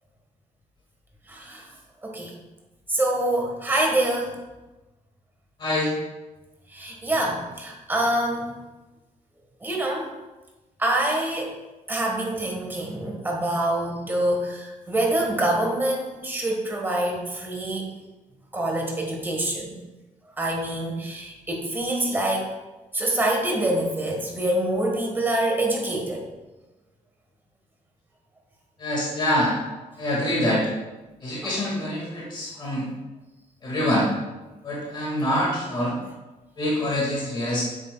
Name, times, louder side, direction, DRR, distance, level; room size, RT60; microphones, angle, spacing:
voice 1, 1.3-1.7 2.0-2.3 2.9-4.3 6.7-8.5 9.6-10.1 10.8-11.5 11.9-17.8 18.5-19.8 20.4-22.5 22.9-26.2 31.4-31.6 32.6-32.7, right 1 dB, 15° right, 0 dB, 1.3 m, -26 dB
voice 2, 5.6-5.9 28.8-29.5 30.0-30.6 31.2-32.9 33.6-34.1 34.6-36.0 36.6-37.6, left 1 dB, 35° left, -4 dB, 1.8 m, -25 dB
8.5 x 7.2 x 2.2 m, 1.1 s
cardioid pair, 160°, 13 cm